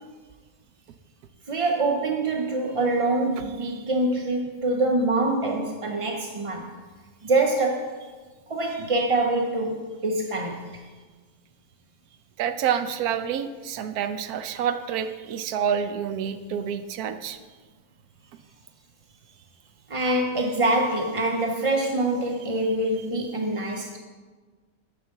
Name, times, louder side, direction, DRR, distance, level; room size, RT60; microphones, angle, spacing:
voice 1, 1.5-6.7 7.2-8.0 8.5-10.8 19.9-24.0, right 2 dB, 45° right, 2 dB, 0.4 m, -25 dB
voice 2, 12.4-17.4, right 8 dB, 85° right, 9 dB, 1.1 m, -28 dB
6.8 x 5.9 x 6.5 m, 1.4 s
omnidirectional pair, 1.5 m